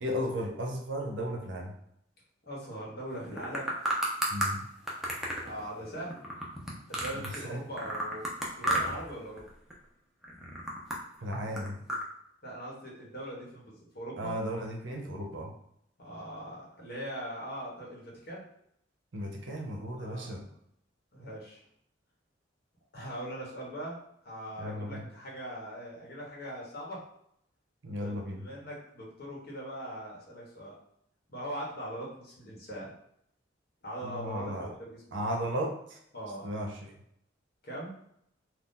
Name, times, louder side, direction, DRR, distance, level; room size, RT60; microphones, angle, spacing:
voice 1, 0.0-1.8 4.3-4.6 7.2-7.6 11.2-11.8 14.2-15.5 19.1-20.5 24.6-25.1 27.8-28.5 34.0-34.7 35.1-36.0 36.4-37.0, equal, 70° right, 2 dB, 0.7 m, -35 dB
voice 2, 2.4-3.7 5.4-6.2 6.9-8.3 8.6-9.5 12.4-14.3 16.0-18.4 20.0-20.3 21.1-21.6 22.9-24.0 24.2-27.0 28.0-30.7 31.3-32.9 33.8-35.2 36.1-36.5 37.6-37.9, right 1 dB, 55° left, -4 dB, 1.2 m, -41 dB
sound 1, 3.2-4.5 4.9-7.5 7.8-9.1 9.4-9.8 10.2-12.0, right 1 dB, ahead, 0.5 m, -32 dB
2.7 x 2.3 x 3.7 m, 0.74 s
head